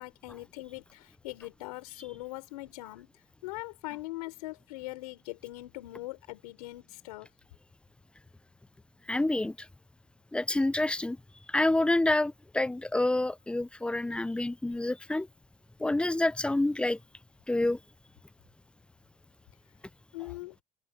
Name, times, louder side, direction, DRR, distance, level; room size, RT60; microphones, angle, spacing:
voice 1, 0.0-3.1 3.4-7.3 20.1-20.5, left 19 dB, 90° left, 5.0 m, -41 dB
voice 2, 9.1-9.5 10.3-11.2 11.5-15.3 15.8-17.0 17.5-17.8, left 2 dB, 5° left, 0.4 m, -27 dB
supercardioid pair, 95°, 19 cm